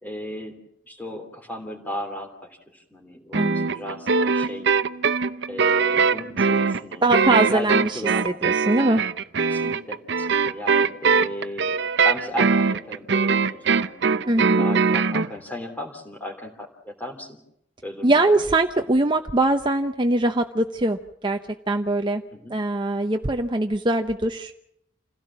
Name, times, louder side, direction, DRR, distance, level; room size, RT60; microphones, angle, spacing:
voice 1, 0.0-4.7 5.5-8.3 9.4-11.8 12.0-17.4 17.8-18.4 22.3-22.5, left 1 dB, 10° left, 2 dB, 3.1 m, -36 dB
voice 2, 3.3-3.7 7.0-9.0 14.3-14.6 18.0-21.4 21.7-22.2 22.5-24.5, right 2 dB, 25° right, 5 dB, 0.9 m, -22 dB
sound 1, 3.3-15.3, right 5 dB, 65° right, 0.8 m, -21 dB
27.5 x 16.5 x 7.4 m, 0.77 s
head